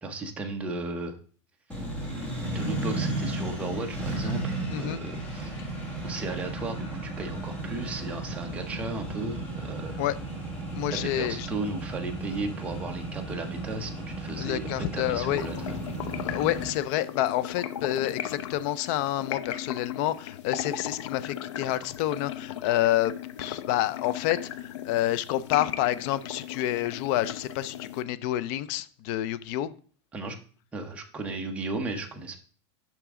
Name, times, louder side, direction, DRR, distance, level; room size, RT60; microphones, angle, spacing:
voice 1, 0.0-1.2 2.5-5.7 6.0-10.0 10.9-15.8 30.1-30.4 30.7-32.4, right 2 dB, 10° right, 2 dB, 0.8 m, -35 dB
Accelerating revving vroom, 1.7-16.7, right 2 dB, 10° left, 1.8 m, -34 dB
voice 2, 4.7-5.0 10.0-10.2 10.7-11.5 14.3-15.4 16.2-23.1 23.4-29.7, left 13 dB, 35° left, 16 dB, 0.4 m, -28 dB
sound 1, 15.4-28.0, left 11 dB, 85° left, 0.7 m, -37 dB
8.8 x 6.0 x 3.6 m, 0.42 s
supercardioid pair, 170°, 15 cm